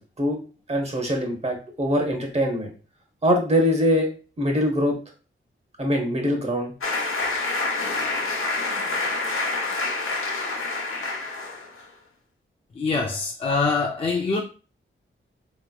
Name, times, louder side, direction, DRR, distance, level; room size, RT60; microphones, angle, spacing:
voice 1, 0.7-2.7 3.2-4.1 4.4-5.0 5.8-6.7, equal, 30° right, 0.9 m, -23 dB
sound 1, 6.8-11.8, left 3 dB, 80° left, 0.8 m, -27 dB
voice 2, 12.8-14.4, left 4 dB, 30° left, 0.4 m, -24 dB
4.3 x 2.9 x 2.3 m
wide cardioid pair, 170°, 21 cm